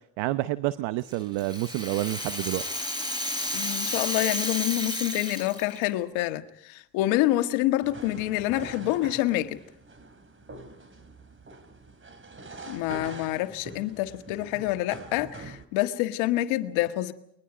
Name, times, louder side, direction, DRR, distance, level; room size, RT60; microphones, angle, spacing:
voice 1, 0.2-2.7, right 17 dB, 65° right, 1.0 m, -28 dB
Rattle (instrument), 1.1-5.9, left 1 dB, 10° right, 7.3 m, -32 dB
voice 2, 3.5-9.6 12.7-17.1, left 15 dB, 70° left, 1.7 m, -27 dB
sound 1, 7.8-15.6, right 2 dB, 25° right, 3.1 m, -44 dB
29.5 x 22.5 x 5.1 m
hypercardioid pair, 65°, 50 cm